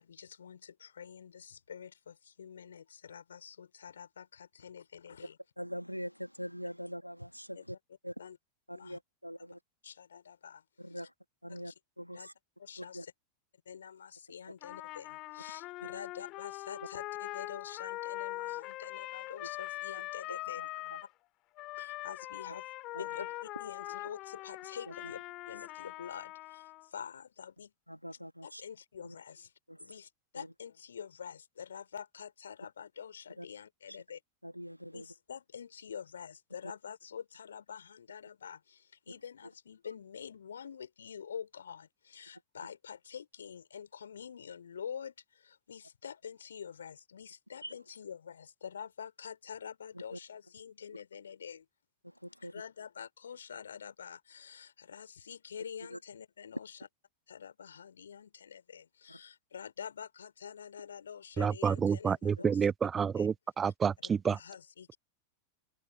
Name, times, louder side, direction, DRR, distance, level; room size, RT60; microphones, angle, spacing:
voice 1, 0.0-5.4 7.5-7.7 8.2-8.4 8.7-9.0 9.4-9.5 9.8-11.1 11.5-11.8 12.1-12.3 12.6-13.1 13.7-20.6 21.8-22.7 23.0-25.2 25.5-27.7 28.4-29.5 29.8-34.2 34.9-51.7 52.4-56.9 57.3-62.7 63.1-63.3 63.6-65.0, left 7 dB, 70° left, 4.3 m, -47 dB
voice 2, 5.6-7.8 8.0-8.1 8.7-9.6 10.8-11.1 11.4-12.3 12.8-13.0 15.8-15.9 20.3-21.0 22.9-23.0 27.9-28.6 29.0-29.1 29.7-29.8 30.4-30.5 33.4-33.5 33.9-34.0 34.4-35.0 47.6-47.7 52.2-52.5 55.9-56.0 59.1-59.2, equal, 90° left, 1.4 m, -43 dB
Trumpet, 14.6-21.1 21.6-26.9, left 19 dB, 40° left, 3.0 m, -42 dB
voice 3, 61.4-64.4, right 6 dB, 20° right, 0.3 m, -29 dB
open air
figure-of-eight pair, 90°, 0 cm